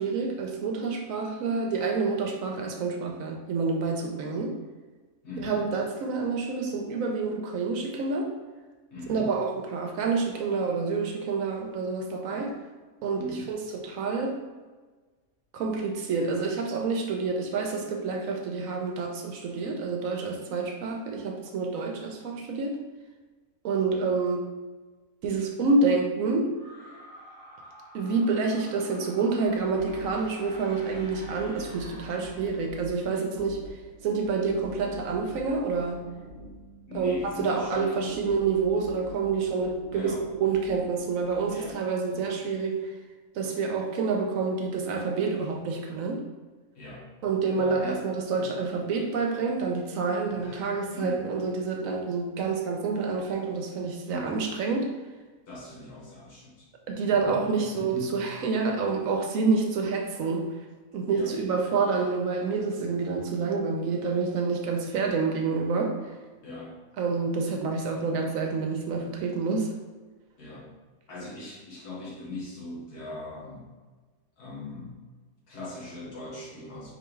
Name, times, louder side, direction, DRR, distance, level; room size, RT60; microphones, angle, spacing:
voice 1, 0.0-4.6 5.4-8.3 9.1-12.6 13.0-14.4 15.5-22.8 23.6-24.5 25.2-26.5 27.9-33.6 34.0-36.0 36.9-42.9 43.3-46.2 47.2-54.9 56.9-60.5 60.9-66.1 67.0-69.7, right 4 dB, 70° right, 3 dB, 0.9 m, -28 dB
voice 2, 5.2-5.7 8.9-9.4 13.2-13.6 20.5-20.6 36.9-38.2 39.9-40.3 41.5-41.8 42.1-42.4 46.8-47.1 47.5-48.1 48.4-48.5 50.2-51.3 54.1-54.4 55.5-56.7 57.1-58.2 61.1-61.4 66.4-66.8 70.4-70.7 71.1-73.7 74.4-75.1 75.5-76.9, left 2 dB, 90° left, -5 dB, 1.9 m, -40 dB
sound 1, 26.5-33.0, equal, 35° left, 1.8 m, -49 dB
sound 2, 29.4-41.7, left 1 dB, 55° left, 0.8 m, -46 dB
4.5 x 3.4 x 3.1 m, 1.3 s
omnidirectional pair, 1.6 m